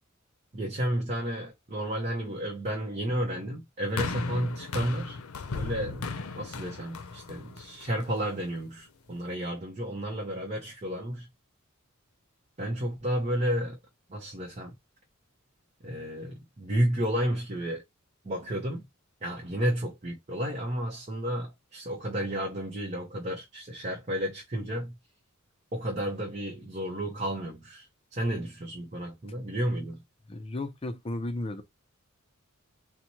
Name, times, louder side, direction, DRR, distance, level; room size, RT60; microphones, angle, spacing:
voice 1, 0.5-5.2 5.5-11.3 12.6-13.8 14.1-14.7 15.8-17.8 18.2-18.9 19.2-25.0 25.7-30.0, equal, 35° right, 0.8 m, -32 dB
sound 1, 4.0-8.3 9.1-9.2, left 4 dB, 85° left, 0.5 m, -36 dB
voice 2, 30.3-31.6, left 2 dB, 25° left, 0.5 m, -34 dB
4.1 x 2.2 x 3.0 m
head